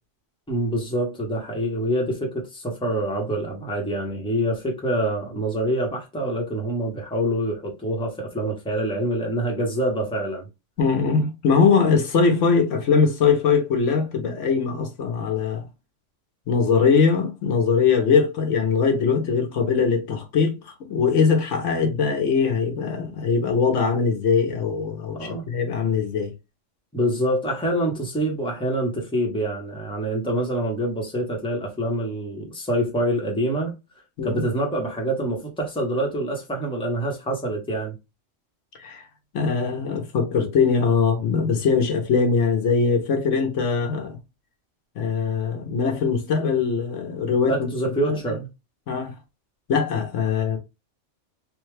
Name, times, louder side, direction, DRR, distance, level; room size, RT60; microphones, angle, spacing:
voice 1, 0.5-10.5 25.1-25.4 26.9-33.7 34.2-37.9 47.5-48.5, right 1 dB, 5° left, 0.9 m, -26 dB
voice 2, 10.8-15.6 16.5-26.3 34.2-34.4 38.8-39.0 39.3-44.2 45.0-47.7 48.1-48.2 48.9-49.1 49.7-50.6, left 5 dB, 80° left, 1.1 m, -21 dB
3.4 x 2.3 x 3.1 m
omnidirectional pair, 1.2 m